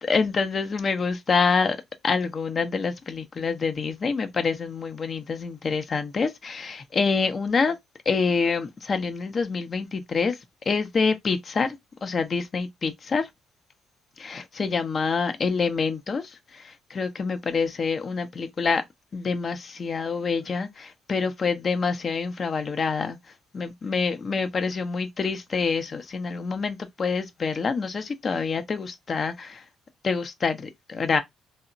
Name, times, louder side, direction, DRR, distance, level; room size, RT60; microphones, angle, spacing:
voice 1, 0.1-1.8 2.0-7.8 8.1-10.4 10.7-13.3 14.2-18.8 19.1-23.2 23.5-29.6 30.0-31.2, left 5 dB, 50° left, 0.5 m, -26 dB
2.9 x 2.1 x 2.5 m
supercardioid pair, 60°, 0 cm